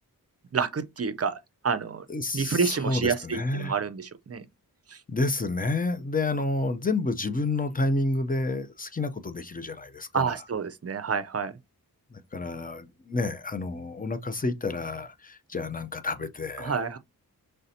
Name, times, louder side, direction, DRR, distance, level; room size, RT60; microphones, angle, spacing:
voice 1, 0.5-1.4 1.6-2.0 2.3-4.4 4.9-5.0 10.1-11.5 16.6-17.0, right 5 dB, 40° right, 0.5 m, -28 dB
voice 2, 2.1-3.8 5.1-10.4 12.1-16.9, left 2 dB, 25° left, 0.5 m, -30 dB
5.4 x 3.3 x 2.7 m
wide cardioid pair, 95°, 37 cm